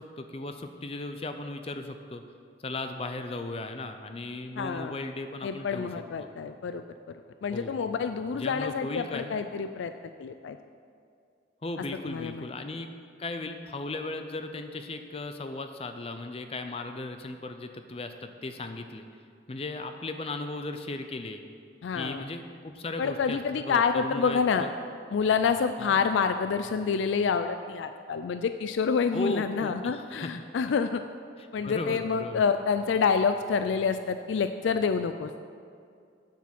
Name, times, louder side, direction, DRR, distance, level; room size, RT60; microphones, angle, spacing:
voice 1, 0.0-2.2 2.6-6.3 7.5-7.8 8.3-9.4 11.6-12.9 13.2-19.1 19.5-21.4 21.9-24.7 25.8-26.0 29.1-30.3 31.4-32.4, left 2 dB, 30° left, 7 dB, 0.5 m, -36 dB
voice 2, 4.6-4.9 5.4-6.8 7.1-9.9 10.2-10.6 12.0-12.5 21.8-22.2 23.0-24.6 25.1-31.0 31.5-35.3, left 5 dB, 85° left, 9 dB, 0.4 m, -27 dB
9.2 x 7.4 x 5.9 m, 2.3 s
head